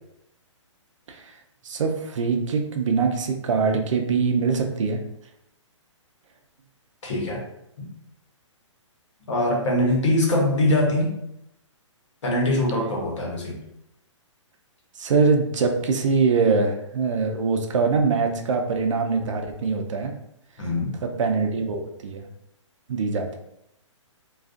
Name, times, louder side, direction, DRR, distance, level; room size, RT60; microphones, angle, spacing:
voice 1, 1.6-5.0 15.0-20.1 21.0-22.3 22.9-23.4, right 4 dB, 75° right, 4 dB, 0.5 m, -23 dB
voice 2, 7.0-7.4 7.8-7.9 9.3-11.1 12.2-13.6 20.6-20.9, left 1 dB, 65° left, -1 dB, 0.9 m, -22 dB
2.4 x 2.3 x 2.4 m, 0.81 s
hypercardioid pair, 165°, 16 cm